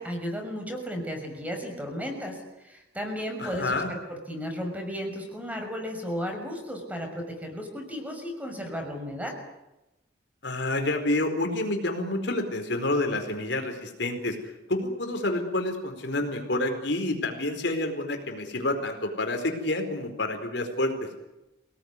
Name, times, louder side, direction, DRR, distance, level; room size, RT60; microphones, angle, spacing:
voice 1, 0.0-2.4 2.6-9.4, equal, 10° right, 3 dB, 6.2 m, -34 dB
voice 2, 3.4-3.9 10.4-14.4 14.7-20.9, left 2 dB, 65° left, 4 dB, 4.5 m, -28 dB
28.0 x 19.0 x 9.8 m, 0.96 s
head